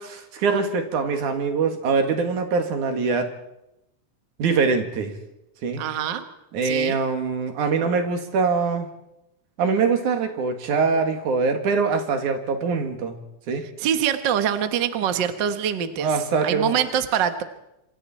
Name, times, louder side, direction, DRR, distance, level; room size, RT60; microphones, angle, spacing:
voice 1, 0.0-3.3 4.4-5.1 5.6-5.8 6.5-8.9 9.6-13.2 13.5-13.6 16.0-16.8, right 5 dB, 75° right, 5 dB, 3.4 m, -23 dB
voice 2, 5.8-6.2 6.6-7.0 13.8-16.1 16.4-17.4, right 9 dB, 50° right, 9 dB, 1.5 m, -24 dB
27.5 x 24.5 x 4.3 m, 0.87 s
omnidirectional pair, 3.5 m